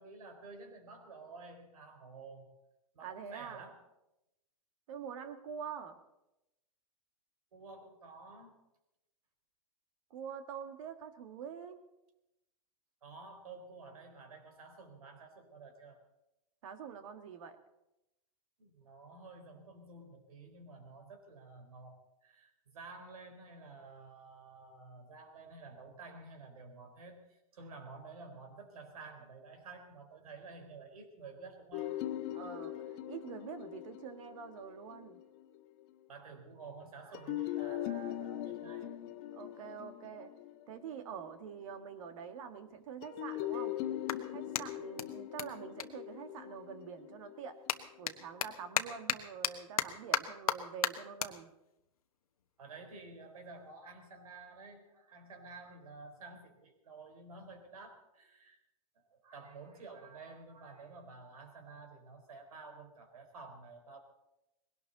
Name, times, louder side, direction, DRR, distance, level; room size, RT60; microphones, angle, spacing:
voice 1, 0.0-2.5 2.9-3.8 7.5-8.6 13.0-16.0 18.6-32.1 32.6-32.7 36.1-38.9 52.6-58.6 59.0-64.0, right 3 dB, 80° right, 5 dB, 4.2 m, -51 dB
voice 2, 3.0-3.7 4.9-6.0 10.1-11.8 16.6-17.6 32.3-35.2 39.3-40.3 40.7-43.8 44.3-47.6 48.0-51.5, right 7 dB, 65° right, 8 dB, 1.9 m, -46 dB
sound 1, 31.7-35.6 37.1-41.6 43.0-48.2, left 12 dB, 50° left, 1.4 m, -41 dB
Clapping, 42.0-42.1 42.7-46.8 47.1-53.7, left 8 dB, 90° left, 1.2 m, -38 dB
20.5 x 17.5 x 4.1 m, 0.90 s
hypercardioid pair, 125°, 18 cm